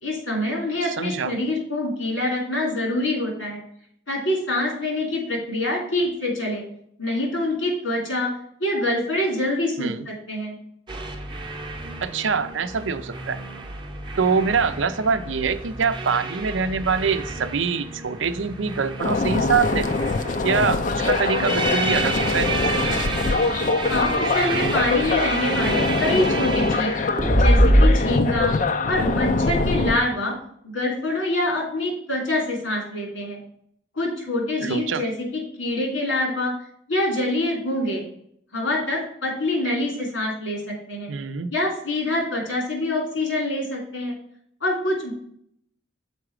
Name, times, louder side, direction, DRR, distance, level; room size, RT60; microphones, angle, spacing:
voice 1, 0.0-3.6 4.1-6.6 7.0-8.3 8.6-10.6 23.9-26.9 27.4-28.5 28.8-30.3 30.6-33.4 33.9-36.5 36.9-38.0 38.5-41.1 41.5-44.2 44.6-45.1, left 1 dB, 90° left, 0 dB, 3.1 m, -25 dB
voice 2, 0.8-1.3 9.8-10.0 12.0-13.4 14.2-19.9 20.4-22.8 34.6-35.0 41.1-41.5, right 5 dB, 80° right, 11 dB, 0.5 m, -24 dB
sound 1, 10.9-27.9, right 1 dB, 25° right, 0.8 m, -26 dB
sound 2, 19.0-30.0, left 3 dB, 40° left, 0.4 m, -23 dB
6.6 x 4.9 x 4.7 m, 0.68 s
head